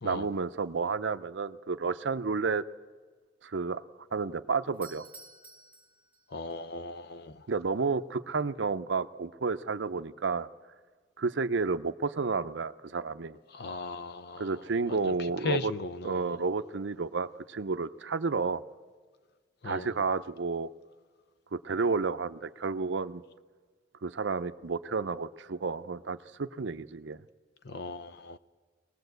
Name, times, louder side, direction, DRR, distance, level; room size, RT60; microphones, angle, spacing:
voice 1, 0.0-2.6 3.4-3.8 4.1-5.0 7.5-10.5 11.2-13.4 14.4-15.7 16.0-18.6 19.6-20.7 21.5-23.2 24.0-27.2, right 4 dB, 70° right, 0.6 m, -31 dB
Doorbell, 4.7-6.6, right 3 dB, 10° right, 1.6 m, -52 dB
voice 2, 6.3-7.4 13.5-14.5 14.9-15.1 15.4-16.4 19.6-19.9 27.6-28.4, left 3 dB, 60° left, 0.7 m, -37 dB
22.5 x 19.0 x 8.0 m
head